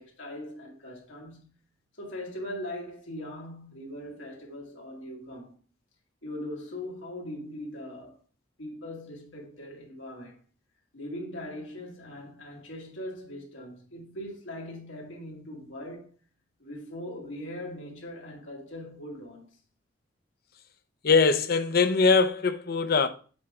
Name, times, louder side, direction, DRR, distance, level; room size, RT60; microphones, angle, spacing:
voice 1, 0.0-1.6 2.0-5.5 6.2-8.2 8.6-10.4 10.9-16.2 16.6-19.5, left 1 dB, 85° left, 2.2 m, -40 dB
voice 2, 21.0-23.1, left 4 dB, 55° left, 0.6 m, -22 dB
7.6 x 3.7 x 3.4 m
head